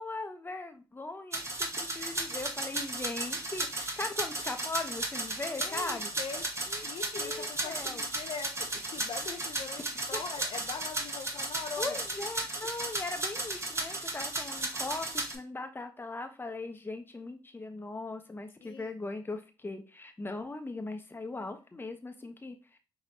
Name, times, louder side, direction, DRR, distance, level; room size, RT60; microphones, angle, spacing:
voice 1, 0.0-6.1 6.7-6.8 7.1-8.0 10.1-10.2 11.8-22.8, left 3 dB, 20° left, 6 dB, 0.9 m, -39 dB
sound 1, 1.3-15.4, right 2 dB, 30° right, 1.1 m, -35 dB
voice 2, 5.6-6.4 6.8-9.8 10.1-12.0 18.6-18.9, left 6 dB, 65° left, 5 dB, 0.5 m, -41 dB
5.2 x 2.9 x 2.8 m, 0.32 s
supercardioid pair, 55°, 10 cm